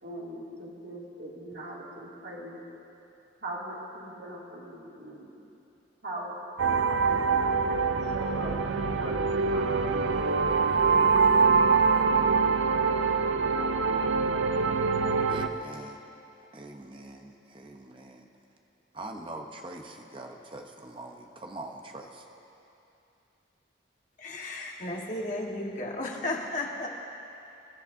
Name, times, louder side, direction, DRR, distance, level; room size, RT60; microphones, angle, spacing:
voice 1, 0.0-2.6 3.4-5.3 6.0-6.4 6.9-8.6 8.9-10.0, right 1 dB, 60° right, -5 dB, 2.6 m, -40 dB
sound 1, 6.6-15.5, right 5 dB, 90° right, 0.6 m, -24 dB
voice 2, 15.3-16.0 16.5-18.3 18.9-22.2, right 2 dB, 25° right, 3 dB, 0.9 m, -43 dB
voice 3, 24.2-26.9, left 2 dB, 40° left, -1 dB, 1.6 m, -34 dB
27.0 x 13.0 x 2.7 m, 2.8 s
head